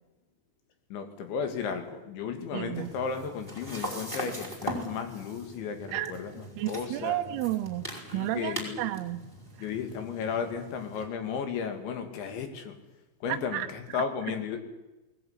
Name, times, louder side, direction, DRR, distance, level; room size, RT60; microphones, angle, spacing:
voice 1, 0.9-7.2 8.0-8.9 9.6-12.8 13.2-14.6, left 6 dB, 65° left, 7 dB, 4.5 m, -34 dB
voice 2, 2.5-2.9 5.9-6.1 6.6-9.2 9.6-9.7 13.3-13.7, right 14 dB, 75° right, 6 dB, 2.4 m, -32 dB
sound 1, 2.8-11.0, equal, 5° left, 5.3 m, -41 dB
20.5 x 20.0 x 9.8 m, 1.1 s
omnidirectional pair, 5.8 m